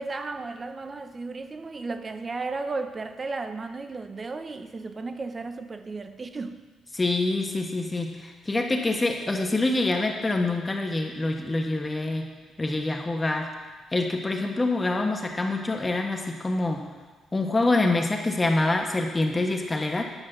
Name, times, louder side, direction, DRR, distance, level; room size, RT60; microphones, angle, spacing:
voice 1, 0.0-6.6, right 3 dB, 30° right, 9 dB, 0.8 m, -34 dB
voice 2, 6.9-12.3 12.6-13.5 13.9-16.9 17.3-20.0, left 2 dB, 20° left, 2 dB, 1.3 m, -26 dB
10.0 x 5.6 x 6.7 m, 1.3 s
cardioid pair, 90°, 0 cm